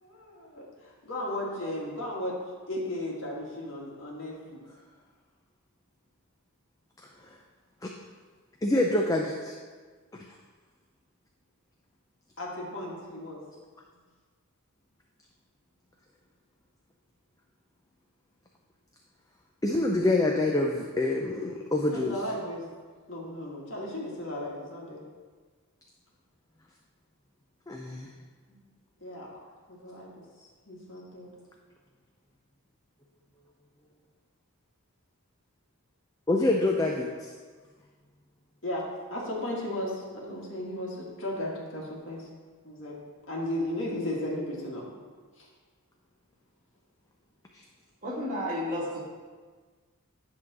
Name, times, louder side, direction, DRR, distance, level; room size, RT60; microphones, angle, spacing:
voice 1, 0.0-2.4 2.7-4.6 12.4-13.4 21.9-22.7 23.1-25.0 28.5-28.6 29.0-29.3 29.7-30.1 30.4-31.3 38.6-42.3 42.6-43.0 43.3-44.9 45.4-45.5, left 1 dB, 55° left, -3 dB, 1.8 m, -35 dB
voice 2, 8.6-9.5 19.6-22.2 27.7-28.1 36.3-37.3, left 2 dB, 15° left, 0 dB, 0.5 m, -26 dB
voice 3, 48.0-49.0, left 1 dB, 35° right, -5 dB, 2.0 m, -31 dB
10.5 x 3.7 x 6.1 m, 1.5 s
head